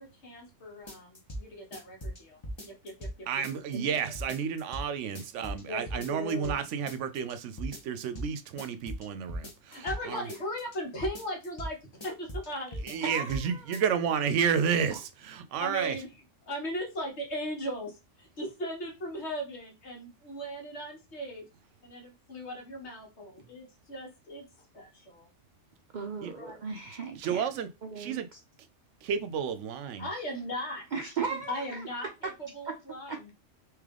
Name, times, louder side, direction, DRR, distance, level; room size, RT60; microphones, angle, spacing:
voice 1, 0.0-3.3 5.7-6.7 9.7-13.0 15.6-16.1 16.5-21.5 21.8-25.3 26.4-26.6 30.0-30.9 31.5-33.3, equal, 65° left, 1.6 m, -38 dB
sound 1, 0.9-1.4 1.7-3.1 3.4-4.9 5.1-5.6 5.9-6.6 6.9-7.3 7.6-8.3 8.6-10.0 10.3-10.8 11.0-11.7 12.0-12.5 12.7-13.4 13.7-13.8, equal, 25° left, 1.0 m, -38 dB
voice 2, 3.3-10.2 12.8-16.0 26.2-26.3 27.2-27.7 28.0-28.3 29.0-30.1, right 7 dB, 80° right, 0.9 m, -31 dB
voice 3, 13.0-13.8 25.9-27.5 27.8-28.4 30.9-31.6 33.1-33.2, right 5 dB, 55° right, 0.5 m, -36 dB
3.3 x 3.0 x 3.6 m
omnidirectional pair, 1.3 m